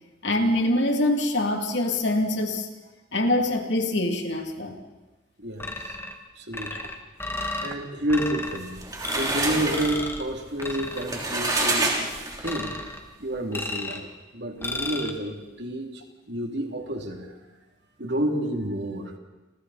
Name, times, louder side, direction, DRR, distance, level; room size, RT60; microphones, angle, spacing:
voice 1, 0.2-2.7 3.1-4.8 6.7-6.9, left 1 dB, 65° left, 3 dB, 2.7 m, -24 dB
voice 2, 5.4-5.7 6.4-6.9 7.6-8.8 9.1-12.0 12.4-12.8 13.2-16.0 16.3-17.4 18.0-19.1, right 1 dB, 60° right, 3 dB, 2.9 m, -29 dB
sound 1, 5.6-6.2 6.5-7.7 8.1-8.6 9.0-9.4 9.7-10.2 10.6-11.1 11.4-11.9 12.4-13.0 13.5-14.1 14.6-15.1, left 2 dB, 10° left, 1.7 m, -33 dB
sound 2, 8.5-12.7, right 2 dB, 20° right, 3.3 m, -28 dB
28.5 x 28.0 x 4.2 m, 1.1 s
head